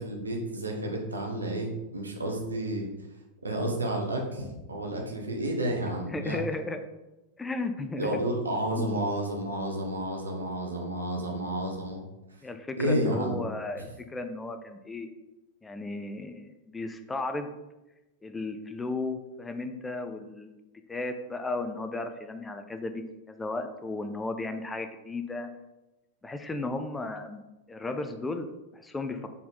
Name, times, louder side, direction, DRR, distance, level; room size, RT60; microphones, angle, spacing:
voice 1, 0.0-2.9 3.4-6.4 8.0-12.0 12.8-13.3 13.8-13.9, right 1 dB, 75° right, 1 dB, 1.2 m, -31 dB
voice 2, 6.1-6.8 7.4-8.2 8.8-9.0 12.4-15.1 15.6-17.5 18.2-20.6 20.9-25.5 26.2-29.3, left 2 dB, 10° left, 7 dB, 0.5 m, -35 dB
4.2 x 4.2 x 5.4 m, 1.0 s
figure-of-eight pair, 90°, 0 cm